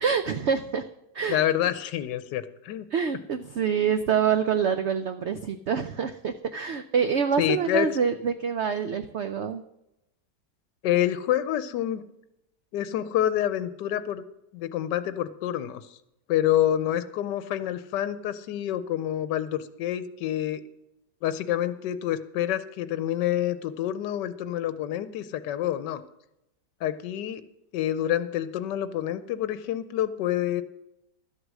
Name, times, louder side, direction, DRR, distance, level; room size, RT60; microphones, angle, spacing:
voice 1, 0.0-0.8 1.1-1.4 2.9-9.6, right 7 dB, 90° right, 10 dB, 0.6 m, -26 dB
voice 2, 1.3-2.8 7.4-7.9 10.8-12.0 12.7-14.2 14.5-16.0 16.3-20.6 21.2-26.0 26.8-27.4 27.7-30.6, left 12 dB, 85° left, 12 dB, 1.3 m, -27 dB
12.5 x 8.0 x 6.3 m, 0.86 s
omnidirectional pair, 1.9 m